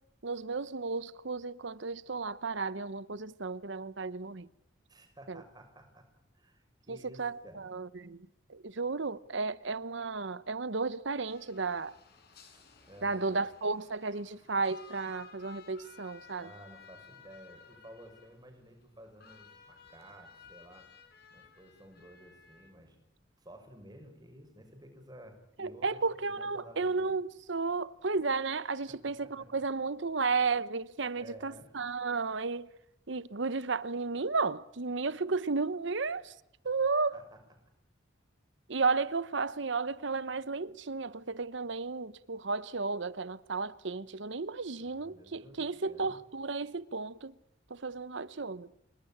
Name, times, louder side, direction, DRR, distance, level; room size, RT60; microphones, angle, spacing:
voice 1, 0.2-4.5 5.3-5.4 6.9-12.0 13.0-16.5 25.6-32.7 33.1-36.3 36.6-37.3 38.7-47.3 47.7-48.7, right 4 dB, 65° right, 0.9 m, -33 dB
voice 2, 4.9-6.1 6.3-7.6 12.5-13.5 16.4-20.9 21.3-23.0 23.4-27.1 29.0-29.6 31.2-31.7 37.1-37.4 44.7-46.2, equal, 20° right, 6.0 m, -53 dB
sound 1, 11.3-22.7, left 5 dB, 50° left, 7.5 m, -57 dB
29.5 x 18.5 x 8.8 m
head